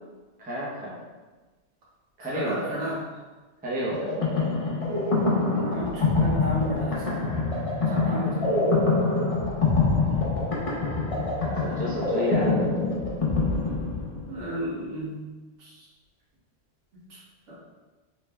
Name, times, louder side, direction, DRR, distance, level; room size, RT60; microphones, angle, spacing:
voice 1, 0.4-1.0 2.2-2.8 3.6-4.2 7.9-8.5 11.6-12.7, equal, 10° right, -6 dB, 0.4 m, -31 dB
voice 2, 2.3-3.0 5.4-7.3 8.1-8.7 9.8-10.3 11.4-11.8 14.3-15.2 17.5-17.6, right 1 dB, 75° right, -7 dB, 1.3 m, -34 dB
sound 1, 3.9-14.5, left 3 dB, 40° left, 0.6 m, -25 dB
3.2 x 3.2 x 2.2 m, 1.2 s
omnidirectional pair, 1.2 m